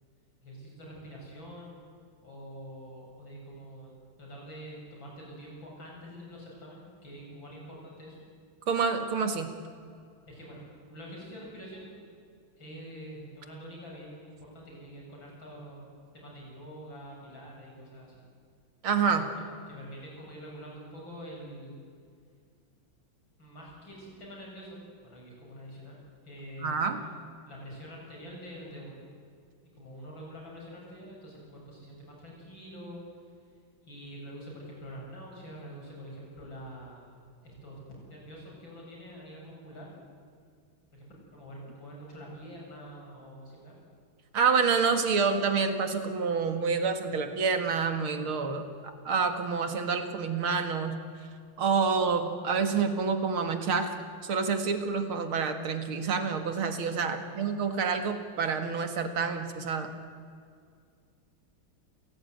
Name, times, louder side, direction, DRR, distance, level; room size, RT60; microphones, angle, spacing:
voice 1, 0.4-1.9 2.2-8.2 10.3-10.6 10.9-12.1 12.6-15.8 16.1-18.2 19.4-21.8 23.4-27.1 27.5-29.0 29.7-33.0 33.8-37.1 37.4-39.9 40.9-41.1 41.3-43.7 57.2-57.5, equal, 65° left, -2 dB, 8.3 m, -46 dB
voice 2, 8.7-9.5 18.8-19.3 26.6-27.0 44.3-50.9 51.6-53.9 54.2-59.9, right 5 dB, 90° right, 7 dB, 2.8 m, -28 dB
29.0 x 17.0 x 9.4 m, 2.2 s
omnidirectional pair, 2.2 m